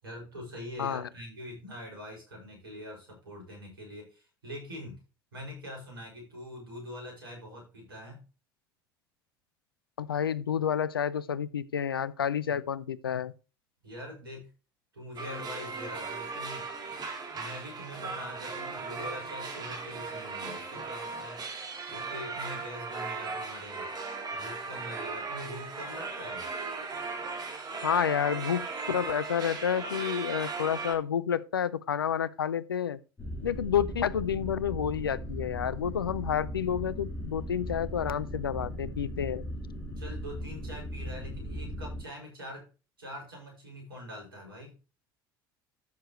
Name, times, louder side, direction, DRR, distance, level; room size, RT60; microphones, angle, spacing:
voice 1, 0.0-5.0 5.3-8.2 13.8-14.5 14.9-16.7 17.3-21.4 21.9-23.9 24.3-26.5 40.0-42.7 43.0-44.7, left 1 dB, 85° right, 5.8 m, -44 dB
voice 2, 0.8-1.1 10.0-13.3 27.8-33.0 33.4-39.4, left 8 dB, 85° left, 0.6 m, -30 dB
sound 1, 15.2-31.0, right 4 dB, 35° right, 3.3 m, -37 dB
sound 2, 33.2-42.0, equal, 20° left, 4.9 m, -38 dB
13.0 x 6.7 x 3.1 m
figure-of-eight pair, 65°, 12 cm